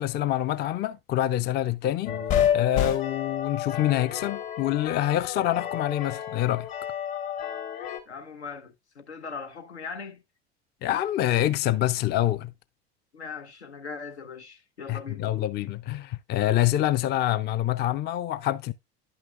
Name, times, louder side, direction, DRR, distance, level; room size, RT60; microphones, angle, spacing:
voice 1, 0.0-2.2 2.5-6.7 10.8-12.5 14.9-18.7, left 13 dB, 30° left, 0.4 m, -26 dB
sound 1, 2.0-8.0, left 9 dB, 60° left, 2.8 m, -30 dB
voice 2, 8.1-10.2 13.1-15.3, left 5 dB, 85° left, 1.0 m, -40 dB
10.5 x 5.7 x 2.4 m
hypercardioid pair, 75°, 32 cm